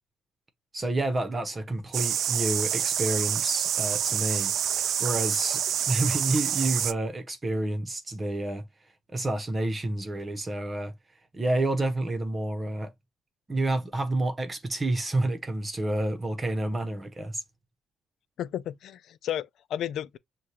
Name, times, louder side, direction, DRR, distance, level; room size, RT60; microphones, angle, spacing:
voice 1, 0.7-4.5 5.0-8.7 9.1-10.9 11.3-12.9 13.5-17.4, right 2 dB, 25° right, 0.9 m, -29 dB
sound 1, 1.9-6.9, right 9 dB, 70° right, 0.4 m, -27 dB
voice 2, 18.4-20.2, left 11 dB, 75° left, 0.4 m, -33 dB
6.4 x 2.3 x 2.8 m
cardioid pair, 90°, 0 cm